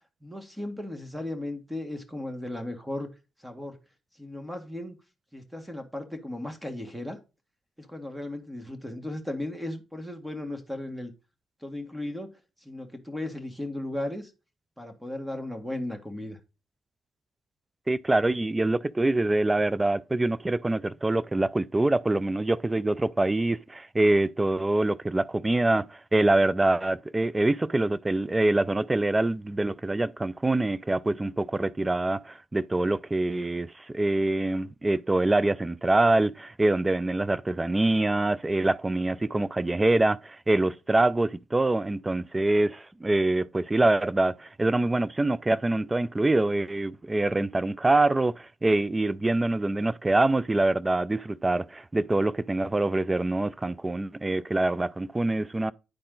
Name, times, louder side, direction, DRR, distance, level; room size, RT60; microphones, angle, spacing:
voice 1, 0.2-3.1 3.4-3.8 4.2-5.0 5.3-7.2 7.8-11.1 11.6-12.3 12.6-14.3 14.8-16.4, left 1 dB, 5° right, 1.9 m, -36 dB
voice 2, 17.9-55.7, right 2 dB, 20° right, 0.5 m, -25 dB
9.8 x 4.3 x 3.9 m
supercardioid pair, 55°, 0 cm